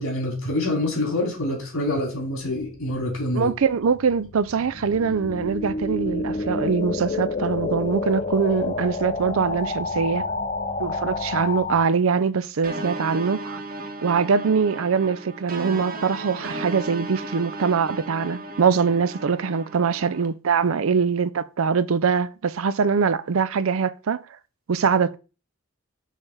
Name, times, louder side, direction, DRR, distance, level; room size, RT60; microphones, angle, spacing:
voice 1, 0.0-3.5, left 1 dB, 75° left, 3.3 m, -26 dB
sound 1, 2.6-11.9, left 3 dB, 35° left, 0.4 m, -29 dB
voice 2, 3.3-10.3 10.8-13.6 14.0-24.2 24.7-25.2, right 6 dB, 75° right, 0.5 m, -23 dB
sound 2, 12.6-20.3, right 2 dB, 40° right, 0.9 m, -35 dB
6.3 x 3.4 x 5.5 m
head